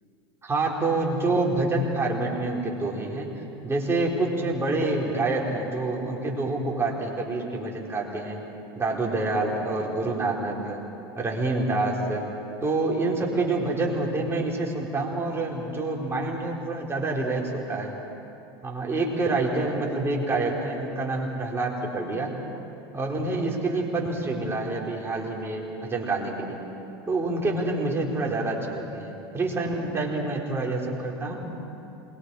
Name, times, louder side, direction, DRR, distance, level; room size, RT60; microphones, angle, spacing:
voice 1, 0.4-3.3 3.6-8.4 8.8-10.8 11.1-12.2 12.6-17.9 18.6-22.3 22.9-26.6 27.1-31.4, right 2 dB, 20° right, -2 dB, 4.3 m, -27 dB
27.5 x 22.0 x 4.9 m, 2.8 s
hypercardioid pair, 100°, 13 cm